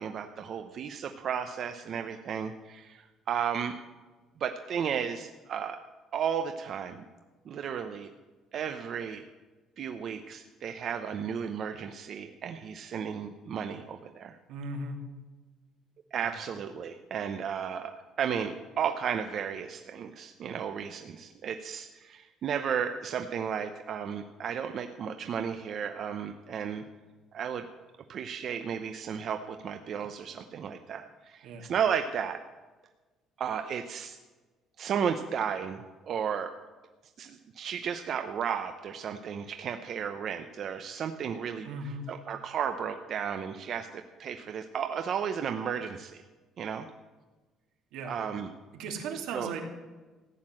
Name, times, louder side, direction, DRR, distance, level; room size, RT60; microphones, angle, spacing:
voice 1, 0.0-3.8 4.4-5.8 6.1-7.1 7.5-8.1 8.5-9.2 9.8-14.4 16.1-26.8 27.3-27.7 28.1-32.4 33.4-34.2 34.8-36.5 37.2-46.2 46.6-46.9 48.0-48.5 49.3-49.5, right 7 dB, 45° right, 7 dB, 0.7 m, -34 dB
voice 2, 14.5-15.0 16.2-16.3 31.4-31.7 41.6-42.1 47.9-48.1 48.7-49.6, right 3 dB, 80° right, 3 dB, 2.5 m, -37 dB
15.0 x 9.6 x 7.5 m, 1.2 s
cardioid pair, 160°, 0 cm